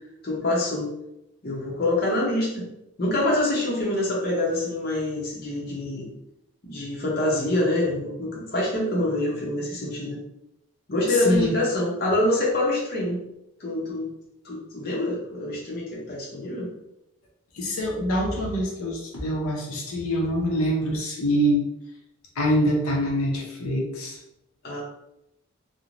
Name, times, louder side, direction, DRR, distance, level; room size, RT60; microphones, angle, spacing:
voice 1, 0.2-0.9 1.4-2.7 3.0-6.1 6.6-10.2 10.9-13.2 13.6-14.1 14.4-16.7 24.6-24.8, left 1 dB, 45° left, -4 dB, 0.6 m, -25 dB
voice 2, 11.1-11.5 17.5-21.7 22.4-24.2, equal, 85° left, -1 dB, 0.6 m, -25 dB
3.0 x 2.1 x 2.4 m, 0.84 s
head